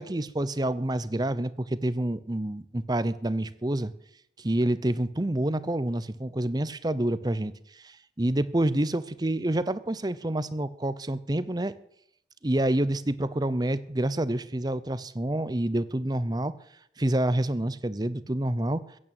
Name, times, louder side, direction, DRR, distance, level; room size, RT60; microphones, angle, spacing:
voice 1, 0.0-3.9 4.4-11.7 12.4-16.5 17.0-18.8, right 1 dB, 25° right, 15 dB, 0.7 m, -28 dB
15.5 x 8.8 x 8.8 m, 0.73 s
head